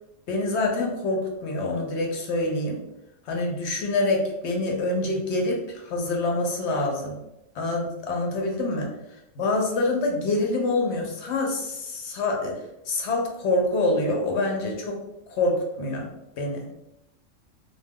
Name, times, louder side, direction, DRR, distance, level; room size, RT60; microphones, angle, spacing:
voice 1, 0.3-2.8 3.3-7.2 7.5-8.9 9.4-12.6 12.9-15.0 15.3-16.1 16.4-16.7, left 2 dB, 65° left, 1 dB, 0.8 m, -26 dB
2.2 x 2.2 x 3.4 m, 0.87 s
omnidirectional pair, 1.4 m